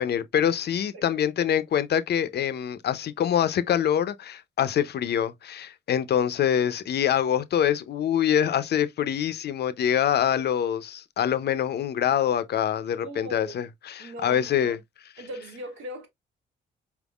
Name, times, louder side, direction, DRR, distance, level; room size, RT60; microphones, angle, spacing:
voice 1, 0.0-14.8, left 9 dB, 55° left, 0.5 m, -25 dB
voice 2, 13.0-13.6 14.0-14.8 15.2-16.1, right 1 dB, 75° right, 1.5 m, -39 dB
4.6 x 3.5 x 2.3 m
cardioid pair, 90°, 20 cm